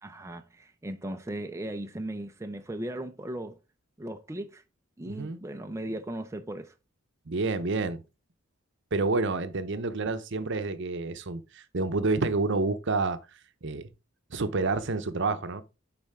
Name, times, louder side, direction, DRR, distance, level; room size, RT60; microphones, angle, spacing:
voice 1, 0.0-3.6 4.0-4.6 5.0-6.7, right 1 dB, 15° right, 0.5 m, -37 dB
voice 2, 5.0-5.4 7.3-8.0 8.9-13.2 13.6-13.9 14.3-15.6, right 3 dB, 60° right, 0.8 m, -29 dB
9.8 x 4.3 x 3.6 m
head